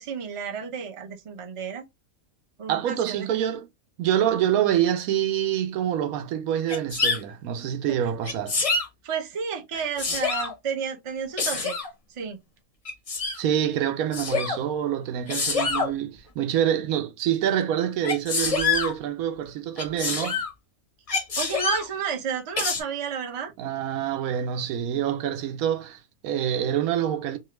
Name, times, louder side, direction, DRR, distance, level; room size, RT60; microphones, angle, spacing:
voice 1, 0.0-1.8 2.6-3.3 7.9-8.0 9.0-11.8 12.1-12.4 21.4-23.5, right 7 dB, 45° right, 0.4 m, -31 dB
voice 2, 2.7-3.7 4.0-8.6 13.3-20.4 23.6-27.4, right 10 dB, 80° right, 1.0 m, -26 dB
Sneeze, 6.7-7.2 8.2-8.9 9.7-10.5 11.4-11.9 12.9-13.4 14.1-14.6 15.3-15.9 18.0-18.9 19.8-20.5 21.1-21.9 22.6-22.8, left 4 dB, 40° left, 0.5 m, -26 dB
2.8 x 2.3 x 3.0 m
omnidirectional pair, 1.5 m